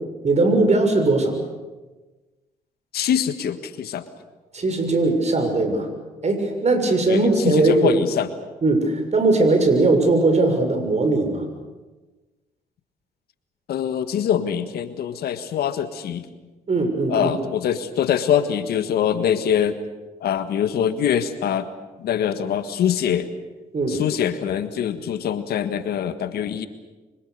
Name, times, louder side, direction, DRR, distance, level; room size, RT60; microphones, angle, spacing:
voice 1, 0.2-1.4 4.5-5.9 6.2-8.0 8.6-11.4 16.7-17.3 23.7-24.0, right 2 dB, 45° right, 6 dB, 6.8 m, -19 dB
voice 2, 2.9-4.0 7.1-8.3 13.7-16.3 17.1-19.8 20.2-21.7 22.0-23.3 23.9-26.7, left 9 dB, 75° left, 11 dB, 1.7 m, -23 dB
25.5 x 25.0 x 6.8 m, 1.2 s
supercardioid pair, 60°, 16 cm